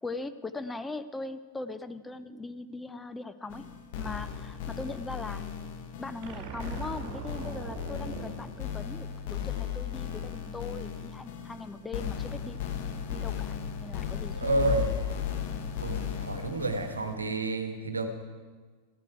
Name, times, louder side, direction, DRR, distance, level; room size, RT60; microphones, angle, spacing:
voice 1, 0.0-3.6 4.0-5.4 6.0-12.6 13.1-13.5 13.8-14.6, left 3 dB, 10° left, 11 dB, 0.5 m, -40 dB
sound 1, 3.5-17.2, left 8 dB, 50° left, 1.1 m, -36 dB
sound 2, 6.2-9.6, right 5 dB, 45° right, 1.6 m, -42 dB
voice 2, 14.3-15.0 15.8-18.1, right 2 dB, 75° right, 7 dB, 1.2 m, -30 dB
13.5 x 12.0 x 4.8 m, 1.5 s
figure-of-eight pair, 90°, 0 cm